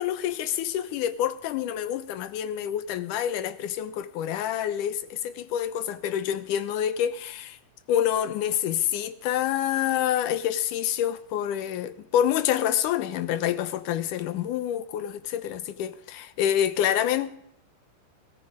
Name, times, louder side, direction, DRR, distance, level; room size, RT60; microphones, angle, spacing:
voice 1, 0.0-7.6 7.9-17.3, left 10 dB, 80° left, 2.4 m, -27 dB
19.5 x 14.0 x 5.0 m
omnidirectional pair, 3.7 m